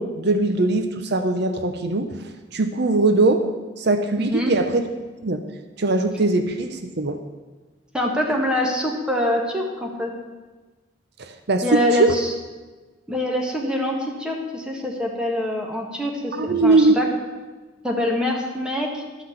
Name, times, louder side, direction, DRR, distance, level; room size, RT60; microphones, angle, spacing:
voice 1, 0.0-2.1 2.5-3.4 3.8-4.8 5.2-5.4 5.8-7.2 11.2-12.1 16.3-17.0, right 2 dB, 60° right, 7 dB, 0.7 m, -20 dB
voice 2, 4.2-4.5 7.9-10.1 11.6-12.3 13.1-17.1 17.8-19.0, left 1 dB, 5° right, 0 dB, 1.6 m, -24 dB
12.0 x 5.8 x 7.9 m, 1.3 s
head